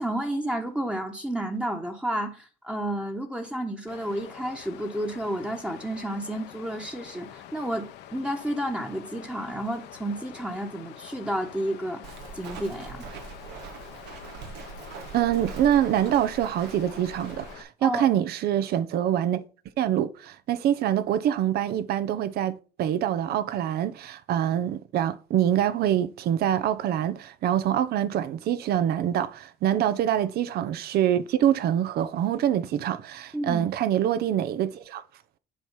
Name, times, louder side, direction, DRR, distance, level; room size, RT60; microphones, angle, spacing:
voice 1, 0.0-12.0 12.3-13.0 17.8-18.2 33.3-33.7, right 1 dB, 5° right, 1.2 m, -31 dB
Water, 3.9-17.6, left 11 dB, 85° left, 1.1 m, -46 dB
Walk footsteps, 12.0-17.5, right 5 dB, 90° right, 1.5 m, -42 dB
voice 2, 15.1-19.4 19.8-35.0, right 10 dB, 70° right, 0.8 m, -25 dB
7.8 x 4.7 x 5.6 m
cardioid pair, 110°, 17 cm